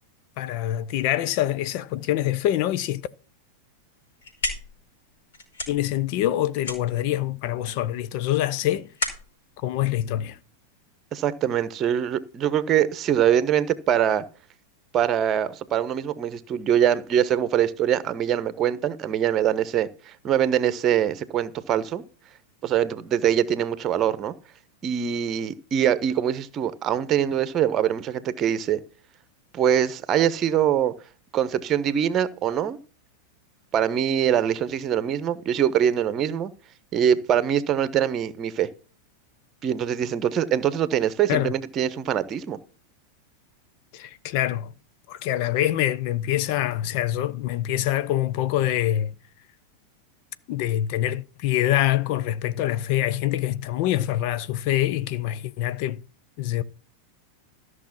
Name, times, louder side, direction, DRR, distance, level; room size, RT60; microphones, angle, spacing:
voice 1, 0.4-3.0 5.7-8.9 9.6-10.4 41.3-41.5 43.9-44.7 45.1-49.1 50.5-56.0 56.4-56.6, left 13 dB, 45° left, 0.6 m, -25 dB
sound 1, 4.0-10.8, left 2 dB, 65° left, 4.9 m, -35 dB
voice 2, 11.1-14.2 14.9-22.0 22.6-24.3 24.8-28.8 29.5-30.9 31.3-32.8 33.7-36.5 36.9-38.7 39.6-42.6, right 9 dB, 30° right, 1.1 m, -23 dB
14.0 x 6.3 x 6.0 m
figure-of-eight pair, 90°, 0 cm